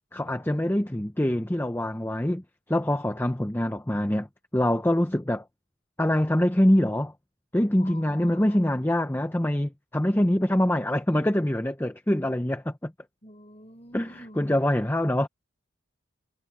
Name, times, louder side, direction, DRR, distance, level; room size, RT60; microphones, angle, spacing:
voice 1, 0.1-2.4 2.7-4.3 4.5-5.4 6.0-7.1 7.5-12.9 13.9-15.3, left 1 dB, 10° left, 0.7 m, -24 dB
voice 2, 7.8-8.6 13.2-14.6, left 1 dB, 30° left, 4.8 m, -47 dB
head